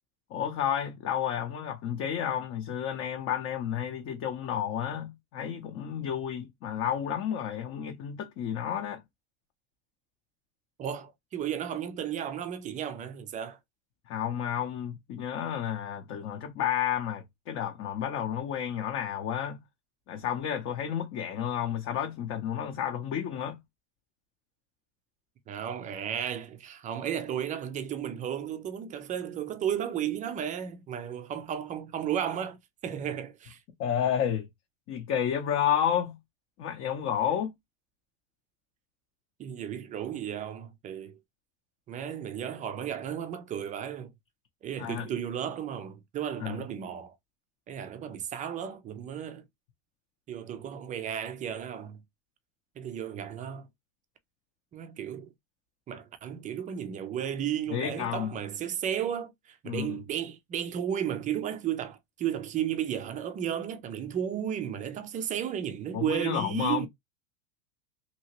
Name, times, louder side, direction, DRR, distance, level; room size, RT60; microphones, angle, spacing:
voice 1, 0.3-9.0 14.1-19.6 20.1-23.6 33.8-34.5 34.9-36.2 36.6-37.5 44.8-45.1 46.4-46.6 57.7-58.3 59.7-60.0 65.9-66.9, left 9 dB, 35° left, 0.7 m, -31 dB
voice 2, 10.8-13.6 25.5-33.6 39.4-41.2 41.9-44.1 44.6-47.1 47.7-49.4 50.3-52.0 52.8-53.7 54.7-55.3 55.9-66.9, right 9 dB, 20° right, 0.3 m, -34 dB
2.8 x 2.8 x 2.9 m
supercardioid pair, 120°, 42 cm